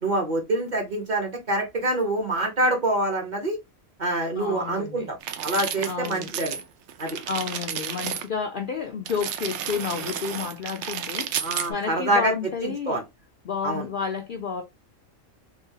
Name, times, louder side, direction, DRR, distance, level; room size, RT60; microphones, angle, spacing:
voice 1, 0.0-3.6 4.0-5.2 5.4-6.6 7.0-7.2 11.4-12.3 12.6-13.0 13.6-13.9, right 1 dB, 35° right, 1.1 m, -26 dB
voice 2, 4.3-5.1 5.9-6.3 7.3-13.0 13.4-14.6, left 6 dB, 60° left, 0.6 m, -31 dB
sound 1, 5.2-6.6 6.9-8.3 9.1-11.7, right 9 dB, 70° right, 0.8 m, -32 dB
3.3 x 2.7 x 2.8 m
omnidirectional pair, 1.4 m